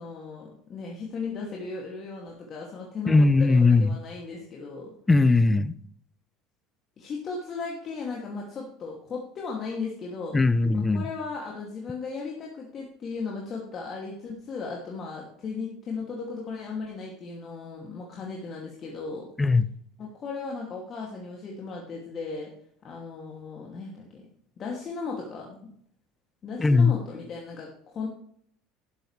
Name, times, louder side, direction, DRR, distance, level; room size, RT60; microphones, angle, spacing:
voice 1, 0.0-4.9 7.0-10.4 10.7-19.3 20.0-22.5 22.8-24.3 24.6-25.6 26.4-28.1, left 4 dB, 40° left, -1 dB, 2.6 m, -36 dB
voice 2, 3.1-4.0 5.1-5.7 10.3-11.1 19.4-19.7 26.6-26.9, left 3 dB, 15° left, 16 dB, 0.7 m, -19 dB
12.0 x 11.5 x 3.3 m, 0.64 s
hypercardioid pair, 70°, 0 cm